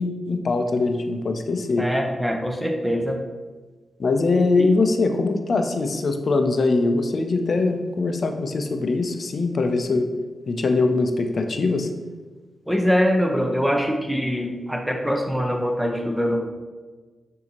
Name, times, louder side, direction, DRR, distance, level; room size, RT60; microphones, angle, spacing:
voice 1, 0.0-1.9 4.0-10.1 10.5-11.9, left 3 dB, 60° left, 6 dB, 0.5 m, -22 dB
voice 2, 1.8-3.2 4.6-4.7 12.7-16.4, equal, 10° right, 2 dB, 0.7 m, -23 dB
6.3 x 2.7 x 2.9 m, 1.3 s
supercardioid pair, 45°, 0 cm